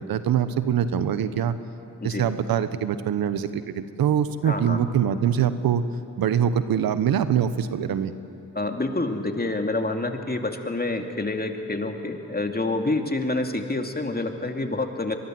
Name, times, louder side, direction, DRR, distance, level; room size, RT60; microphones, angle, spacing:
voice 1, 0.1-1.6 2.0-5.8 6.2-8.1, right 9 dB, 85° right, 13 dB, 0.9 m, -23 dB
voice 2, 4.4-4.8 8.5-15.2, left 2 dB, 25° left, 4 dB, 2.5 m, -27 dB
23.0 x 21.5 x 7.6 m, 2.7 s
supercardioid pair, 45°, 35 cm